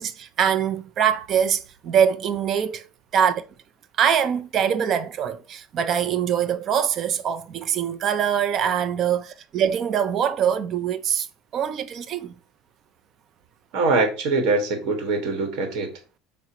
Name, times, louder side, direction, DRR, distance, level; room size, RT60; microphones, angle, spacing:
voice 1, 0.0-2.8 3.1-3.4 4.0-11.3 11.5-12.3, right 8 dB, 35° right, 0.4 m, -23 dB
voice 2, 13.7-15.9, right 3 dB, 55° right, 1.0 m, -23 dB
4.8 x 2.0 x 4.3 m
cardioid pair, 160°, 0 cm